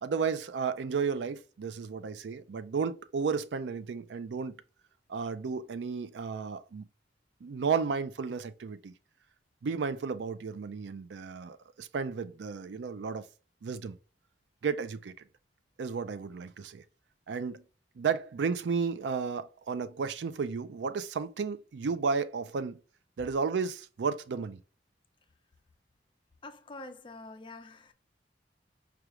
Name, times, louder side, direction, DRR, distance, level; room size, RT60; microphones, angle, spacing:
voice 1, 0.0-4.5 5.1-6.9 7.4-8.9 9.6-13.2 13.6-14.0 14.6-15.1 15.8-16.8 17.3-17.6 18.0-22.8 23.2-24.6, right 5 dB, 75° right, 0.4 m, -33 dB
voice 2, 26.4-27.9, left 2 dB, 30° left, 0.5 m, -46 dB
4.8 x 2.4 x 2.9 m
head